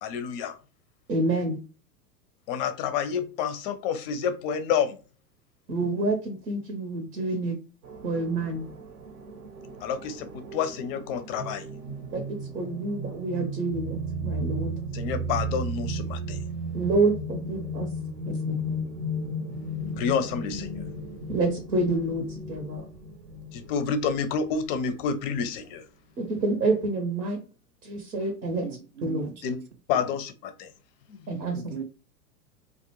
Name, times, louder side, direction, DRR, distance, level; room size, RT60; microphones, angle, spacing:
voice 1, 0.0-0.6 2.5-5.0 9.8-11.7 14.9-16.4 20.0-20.8 23.5-25.9 29.4-29.6 29.9-30.7 31.1-31.3, left 7 dB, 35° left, 0.5 m, -29 dB
voice 2, 1.1-1.6 5.7-7.6 8.0-8.7 12.1-14.7 16.7-17.9 18.2-18.4 18.7-18.8 21.3-22.9 26.2-27.4 27.8-28.7 29.0-29.3 31.3-31.7, right 2 dB, 85° right, 0.9 m, -28 dB
sound 1, 7.8-25.0, right 1 dB, 55° right, 0.7 m, -35 dB
voice 3, 28.6-29.5 30.0-30.1 31.4-31.8, right 8 dB, 30° right, 0.4 m, -39 dB
2.4 x 2.1 x 2.8 m
hypercardioid pair, 105°, 49 cm